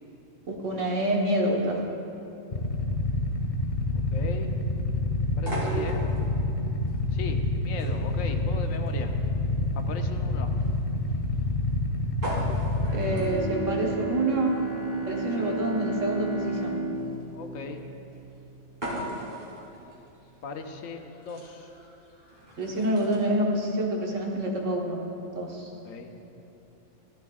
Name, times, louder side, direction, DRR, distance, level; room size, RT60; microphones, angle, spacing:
voice 1, 0.5-1.8 12.9-14.6 15.1-16.8 22.6-25.0 25.4-25.7, right 1 dB, 70° right, -1 dB, 1.6 m, -27 dB
Motorcycle / Idling, 2.5-13.2, left 2 dB, 35° left, 0.6 m, -28 dB
voice 2, 3.9-4.5 5.4-6.0 7.1-9.1 9.7-10.5 15.4-15.6 17.3-17.8 20.4-21.7 25.7-26.1, left 4 dB, 90° left, 5 dB, 1.2 m, -38 dB
sound 1, 5.4-23.2, right 1 dB, 35° right, 2.6 m, -40 dB
Bowed string instrument, 12.8-18.3, right 3 dB, 50° right, 1.7 m, -33 dB
14.5 x 11.5 x 2.4 m, 2.9 s
omnidirectional pair, 1.3 m